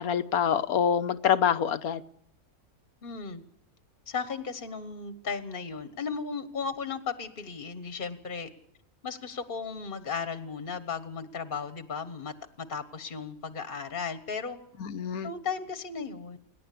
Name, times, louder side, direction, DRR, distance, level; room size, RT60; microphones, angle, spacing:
voice 1, 0.0-2.0 14.8-15.3, left 8 dB, 90° left, 1.5 m, -26 dB
voice 2, 3.0-3.4 4.1-8.5 9.0-14.6 15.2-16.4, left 5 dB, 40° left, 1.3 m, -35 dB
28.0 x 11.0 x 8.4 m
omnidirectional pair, 1.5 m